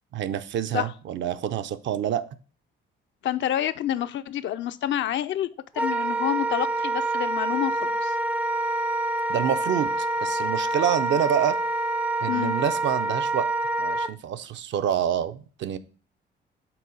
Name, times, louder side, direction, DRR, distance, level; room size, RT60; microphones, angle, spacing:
voice 1, 0.1-2.2 9.3-11.6 12.2-13.5 13.8-15.8, right 9 dB, 70° right, 10 dB, 0.6 m, -27 dB
voice 2, 3.2-5.5 5.8-8.1 12.3-12.5, left 11 dB, 70° left, 11 dB, 0.5 m, -28 dB
Wind instrument woodwind instrument, 5.8-14.1, right 2 dB, 5° right, 0.3 m, -26 dB
6.0 x 3.8 x 6.1 m, 0.39 s
cardioid pair, 90°, 20 cm